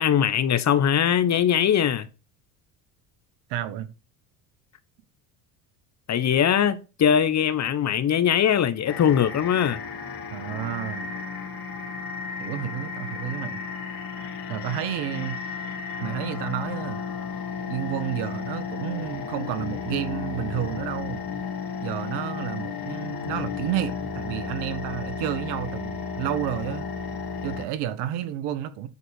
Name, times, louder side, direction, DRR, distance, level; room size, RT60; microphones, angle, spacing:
voice 1, 0.0-2.1 6.1-9.8, left 9 dB, 40° left, 1.2 m, -21 dB
voice 2, 3.5-3.9 10.3-11.1 12.4-13.6 14.5-15.4 16.0-17.0 17.7-21.2 21.8-26.9 27.4-28.9, right 11 dB, 70° right, 1.3 m, -31 dB
sound 1, 8.9-27.7, left 5 dB, 55° left, 3.0 m, -33 dB
9.7 x 4.9 x 6.4 m
supercardioid pair, 80°, 42 cm